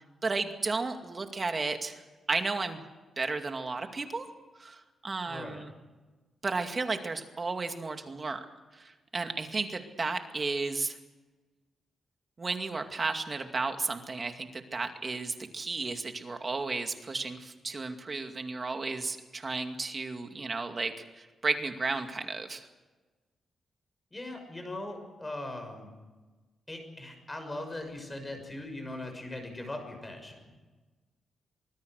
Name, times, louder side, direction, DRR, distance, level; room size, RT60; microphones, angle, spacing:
voice 1, 0.2-2.0 2.3-2.8 3.2-4.3 4.6-5.7 6.4-8.4 8.7-11.0 12.4-22.7, right 3 dB, 30° right, 5 dB, 2.3 m, -33 dB
voice 2, 5.2-5.7 24.1-25.9 26.7-30.5, left 1 dB, 15° left, 5 dB, 6.1 m, -40 dB
25.0 x 21.0 x 6.5 m, 1.2 s
wide cardioid pair, 150°, 0 cm